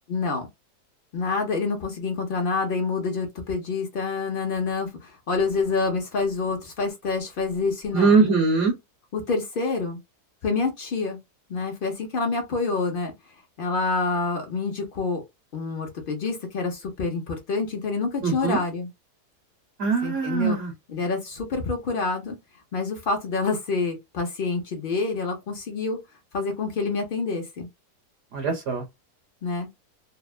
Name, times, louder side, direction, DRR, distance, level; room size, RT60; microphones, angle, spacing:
voice 1, 0.1-0.5 1.1-8.2 9.1-10.0 10.4-11.2 11.5-13.1 13.6-15.2 15.5-18.9 20.0-20.6 20.9-22.4 22.7-26.0 26.3-27.7 29.4-29.7, left 4 dB, 85° left, 0.4 m, -27 dB
voice 2, 7.9-8.7 18.2-18.6 19.8-20.7 28.3-28.8, right 4 dB, 55° right, 1.0 m, -21 dB
2.8 x 2.1 x 2.3 m
omnidirectional pair, 1.8 m